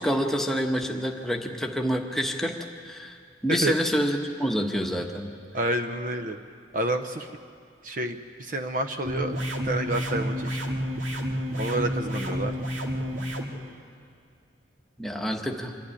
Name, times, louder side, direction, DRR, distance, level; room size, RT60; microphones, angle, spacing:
voice 1, 0.0-2.6 2.8-3.2 3.4-5.3 15.0-15.8, equal, ahead, 2 dB, 1.2 m, -27 dB
voice 2, 5.5-6.4 6.7-7.3 7.8-9.4 9.6-10.6 11.5-12.6, right 1 dB, 45° right, 7 dB, 0.8 m, -29 dB
sound 1, 9.1-13.5, equal, 85° right, 2.2 m, -30 dB
25.5 x 12.0 x 9.8 m, 2.2 s
head